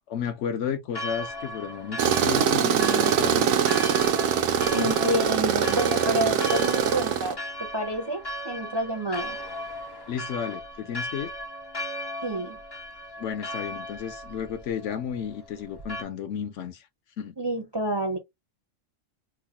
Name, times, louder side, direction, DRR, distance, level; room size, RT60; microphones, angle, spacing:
voice 1, 0.1-3.8 4.8-4.9 10.1-11.3 13.2-16.9 17.2-17.3, left 8 dB, 70° left, 0.9 m, -33 dB
Church bell, 0.9-16.0, equal, 40° left, 0.3 m, -37 dB
Tools, 2.0-7.3, right 8 dB, 85° right, 1.0 m, -23 dB
voice 2, 4.7-9.4 12.2-12.6 17.4-18.2, right 1 dB, 35° right, 0.4 m, -29 dB
4.5 x 2.1 x 2.8 m
omnidirectional pair, 1.4 m